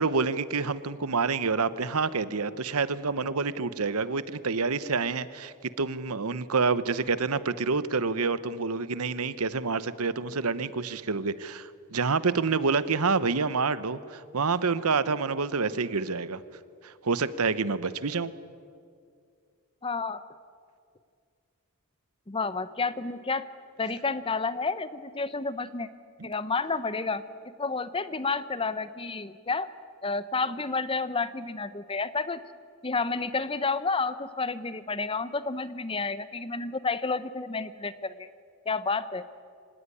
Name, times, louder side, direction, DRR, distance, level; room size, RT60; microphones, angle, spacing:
voice 1, 0.0-16.4 16.8-18.3, right 4 dB, 90° right, 15 dB, 1.0 m, -28 dB
voice 2, 19.8-20.2 22.3-23.4 23.8-25.9 26.2-29.7 30.0-32.4 32.8-38.3 38.7-39.2, left 4 dB, 25° left, 14 dB, 0.8 m, -30 dB
25.0 x 18.5 x 9.8 m, 2.2 s
head